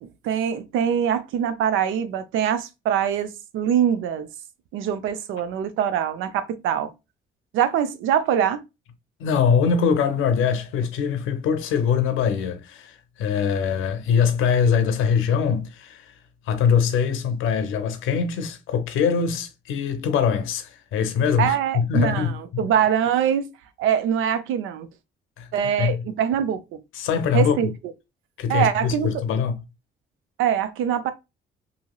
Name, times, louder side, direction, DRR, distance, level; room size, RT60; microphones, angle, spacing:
voice 1, 0.0-4.3 4.7-6.9 7.5-8.6 21.4-23.5 23.8-24.9 25.5-26.6 27.3-27.7 28.5-29.2 30.4-31.1, right 9 dB, 90° right, 0.5 m, -23 dB
voice 2, 9.2-16.1 16.5-22.6 25.4-25.5 25.8-26.0 26.9-27.6 28.4-29.6, left 6 dB, 90° left, 0.6 m, -23 dB
2.9 x 2.7 x 2.2 m
cardioid pair, 90°, 20 cm